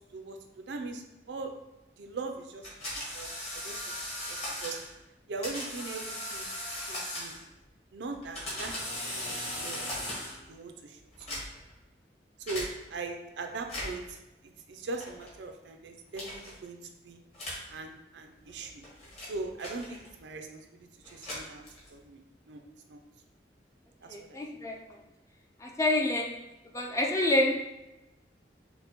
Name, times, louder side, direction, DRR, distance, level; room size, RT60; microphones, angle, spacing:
voice 1, 0.1-1.5 2.0-3.8 4.3-4.8 5.3-6.5 6.9-7.3 7.9-8.7 9.0-9.8 10.5-11.0 11.3-11.5 12.5-14.2 14.4-16.8 17.0-17.2 17.7-18.8 19.3-21.6 21.9-22.6 22.9-23.0 24.0-24.7, right 3 dB, 80° right, 5 dB, 0.4 m, -40 dB
sound 1, 2.6-4.9 5.4-7.5 8.1-10.5 11.1-11.7 12.5-12.7 13.6-14.1 15.0-15.3 16.1-16.5 17.3-17.7 18.5-20.2 21.0-22.0, left 1 dB, 35° left, 1.3 m, -38 dB
voice 2, 24.1-25.0 25.6-26.5 26.7-27.7, left 1 dB, 15° left, 1 dB, 0.4 m, -28 dB
5.3 x 2.1 x 2.9 m, 0.96 s
head